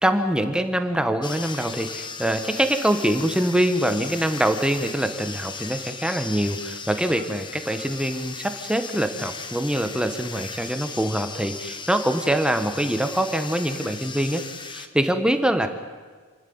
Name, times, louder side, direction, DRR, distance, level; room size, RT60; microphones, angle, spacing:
voice 1, 0.0-15.7, right 1 dB, 5° right, 7 dB, 1.2 m, -24 dB
sound 1, 1.2-14.9, left 5 dB, 20° left, 1.1 m, -37 dB
28.5 x 11.5 x 8.8 m, 1.5 s
head